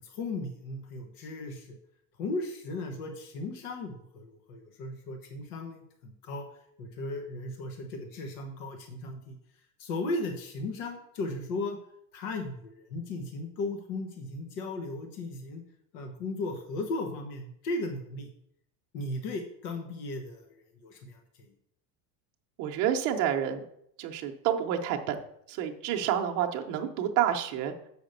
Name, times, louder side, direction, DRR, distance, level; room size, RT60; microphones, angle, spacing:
voice 1, 0.0-1.8 2.2-6.5 6.8-9.4 9.8-11.8 12.1-15.6 15.9-18.3 18.9-21.5, left 2 dB, 65° left, 4 dB, 1.4 m, -36 dB
voice 2, 22.6-23.6 24.0-25.2 25.5-27.7, right 9 dB, 40° right, 3 dB, 0.8 m, -29 dB
6.7 x 5.1 x 6.6 m, 0.73 s
cardioid pair, 175°, 47 cm